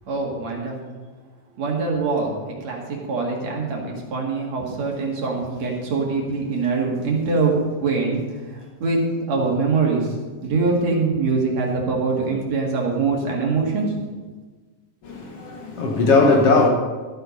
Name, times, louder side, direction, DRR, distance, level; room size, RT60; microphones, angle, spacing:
voice 1, 0.1-0.7 1.6-9.0 9.3-10.2 10.4-13.9, right 4 dB, 60° right, 3.2 m, -23 dB
voice 2, 15.0-16.7, left 3 dB, 60° left, 2.0 m, -18 dB
14.0 x 7.9 x 5.4 m
omnidirectional pair, 3.5 m